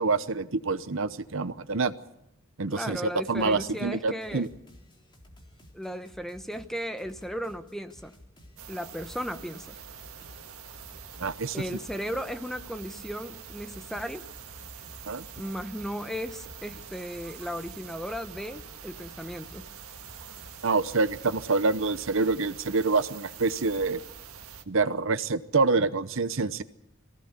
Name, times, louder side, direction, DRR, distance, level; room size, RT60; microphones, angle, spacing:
voice 1, 0.0-1.9 2.6-4.5 11.2-11.8 15.1-15.2 20.6-24.0 24.7-26.6, right 3 dB, 65° right, 13 dB, 0.9 m, -26 dB
voice 2, 2.7-4.5 5.7-8.1 8.7-9.8 11.5-14.3 15.3-19.7, equal, ahead, 9 dB, 0.9 m, -36 dB
sound 1, 3.3-3.9 4.2-22.4, left 1 dB, 20° left, 3.7 m, -54 dB
sound 2, 8.6-24.6, right 7 dB, 80° right, 1.7 m, -45 dB
23.0 x 16.5 x 8.2 m, 0.84 s
head